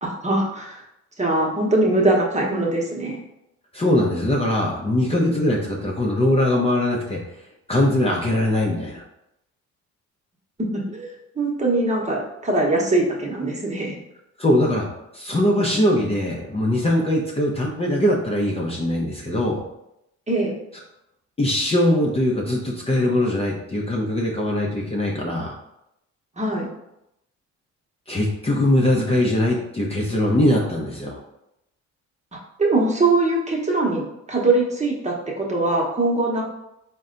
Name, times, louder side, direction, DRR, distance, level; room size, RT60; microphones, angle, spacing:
voice 1, 0.0-0.8 1.2-3.2 10.9-14.0 20.3-20.5 26.4-26.7 32.6-36.4, right 2 dB, 25° right, -2 dB, 1.0 m, -22 dB
voice 2, 3.7-7.2 7.7-9.0 14.4-14.9 15.1-19.6 21.4-25.5 28.1-31.2, left 1 dB, 20° left, -2 dB, 0.6 m, -21 dB
4.0 x 2.2 x 3.7 m, 0.84 s
cardioid pair, 90°, 30 cm